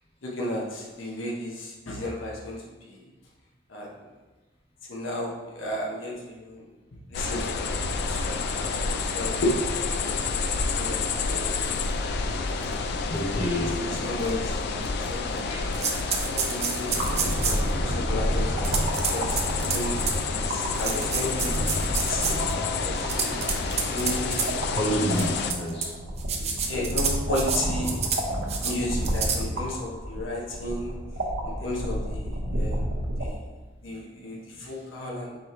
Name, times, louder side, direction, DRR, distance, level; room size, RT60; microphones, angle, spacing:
voice 1, 0.2-3.0 3.7-3.9 4.9-6.7 7.1-7.8 8.1-11.0 11.3-11.5 12.2-12.8 13.7-15.5 16.3-18.8 19.1-21.5 21.8-22.2 22.8-24.5 25.0-25.2 26.6-28.0 28.6-31.0 31.4-32.9 33.2-33.4 33.8-35.4, left 1 dB, 90° left, -3 dB, 0.8 m, -33 dB
sound 1, 7.1-25.5, left 4 dB, 60° left, 0.3 m, -29 dB
sound 2, 11.9-12.0 12.6-12.7 13.2-13.3 14.2-14.3 14.8-15.4 15.7-17.7 18.6-20.2 20.7-22.5 23.0-24.5 25.1-25.9 26.2-27.6 27.8-28.2 28.5-28.7 29.0-29.4, right 6 dB, 35° right, 0.5 m, -29 dB
voice 2, 13.1-13.8 15.5-15.7 24.7-25.9, equal, 30° left, -5 dB, 1.3 m, -28 dB
sound 3, 16.9-33.3, equal, 90° right, 0.9 m, -31 dB
4.9 x 2.9 x 3.7 m, 1.2 s
head